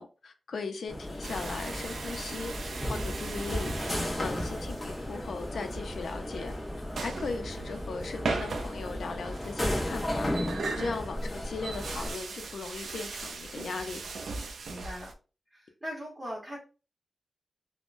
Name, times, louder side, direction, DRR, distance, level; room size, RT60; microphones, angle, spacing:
voice 1, 0.0-2.5 2.9-3.7 4.2-6.5 7.0-10.3 10.8-14.0, left 4 dB, 80° left, 5 dB, 0.5 m, -38 dB
sound 1, 0.9-12.1, left 1 dB, 20° left, 0.9 m, -35 dB
sound 2, 1.2-15.1, right 4 dB, 85° right, 0.4 m, -39 dB
voice 2, 14.6-15.1 15.5-16.6, equal, 15° right, -5 dB, 1.0 m, -41 dB
3.5 x 2.1 x 2.5 m, 0.33 s
wide cardioid pair, 140°, 0 cm